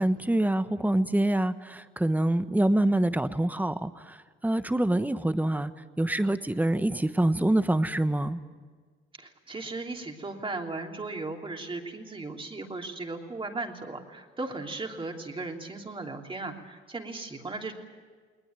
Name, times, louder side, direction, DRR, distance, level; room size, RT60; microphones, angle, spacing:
voice 1, 0.0-5.7 6.0-8.4, right 1 dB, 10° right, 12 dB, 1.1 m, -26 dB
voice 2, 9.2-17.7, right 3 dB, 25° right, 2 dB, 3.1 m, -37 dB
20.0 x 20.0 x 9.2 m, 1.5 s
cardioid pair, 90°, 20 cm